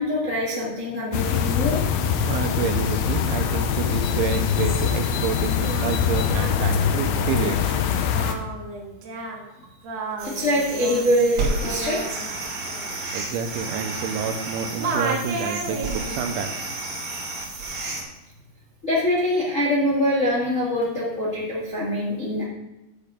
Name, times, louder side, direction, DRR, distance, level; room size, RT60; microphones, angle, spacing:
voice 1, 0.0-1.8 10.2-12.0 18.8-22.4, left 1 dB, 50° left, -4 dB, 0.9 m, -24 dB
sound 1, 1.1-8.3, left 7 dB, 80° left, 3.2 m, -23 dB
voice 2, 2.2-7.8 12.9-16.7, right 6 dB, 90° right, 6 dB, 3.3 m, -29 dB
Singing, 5.5-14.5 14.8-16.2, right 3 dB, 60° right, 1.8 m, -33 dB
sound 2, 10.2-18.0, right 3 dB, 45° right, 3.0 m, -31 dB
11.0 x 10.5 x 3.8 m, 0.99 s
omnidirectional pair, 5.4 m